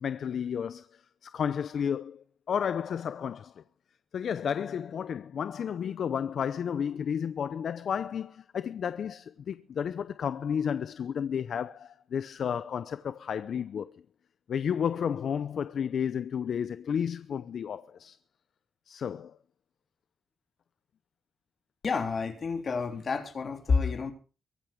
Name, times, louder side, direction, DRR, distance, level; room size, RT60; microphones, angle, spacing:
voice 1, 0.0-3.6 4.1-14.0 14.5-18.2 18.9-19.4, left 8 dB, 65° left, 0.7 m, -32 dB
voice 2, 21.8-24.1, left 4 dB, 45° left, 3.5 m, -29 dB
23.5 x 9.1 x 5.2 m
wide cardioid pair, 130°, 0 cm